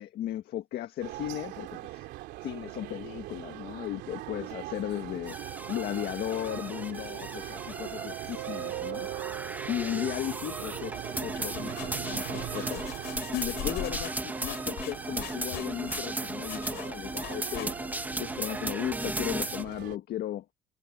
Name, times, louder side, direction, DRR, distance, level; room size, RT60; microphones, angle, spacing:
voice 1, 0.0-2.1 2.4-5.4 5.7-9.1 9.7-12.9 13.3-17.7 18.2-20.4, left 12 dB, 70° left, 1.6 m, -36 dB
sound 1, 1.0-20.0, right 17 dB, 90° right, 3.1 m, -41 dB
sound 2, 5.3-19.6, right 2 dB, 10° right, 1.9 m, -36 dB
sound 3, 11.3-18.1, left 17 dB, 85° left, 7.3 m, -42 dB
cardioid pair, 110°, 17 cm